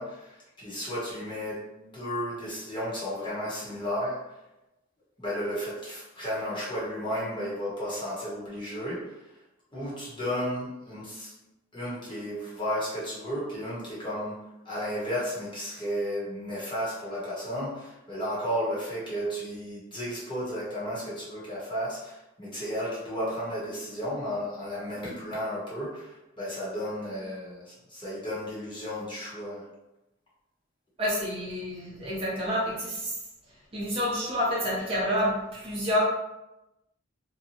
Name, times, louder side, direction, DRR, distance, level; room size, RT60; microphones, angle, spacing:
voice 1, 0.0-4.4 5.2-9.3 9.7-11.3 11.7-14.4 14.6-29.7, equal, 25° left, -8 dB, 1.0 m, -33 dB
voice 2, 31.0-33.1 33.7-36.0, equal, 30° right, -6 dB, 0.7 m, -28 dB
2.7 x 2.2 x 2.9 m, 0.95 s
head